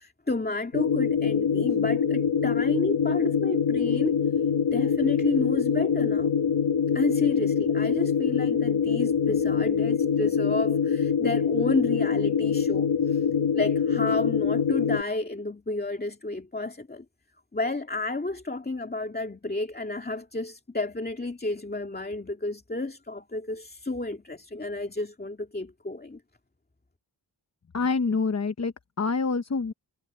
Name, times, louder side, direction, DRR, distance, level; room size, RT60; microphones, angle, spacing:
voice 1, 0.0-4.2 4.7-6.3 6.9-13.3 13.5-17.1 17.5-26.2, left 2 dB, 20° left, 2.3 m, -31 dB
sound 1, 0.7-15.0, left 6 dB, 90° left, 2.1 m, -24 dB
voice 2, 27.7-29.7, left 4 dB, 35° left, 0.9 m, -26 dB
wide cardioid pair, 105°, 44 cm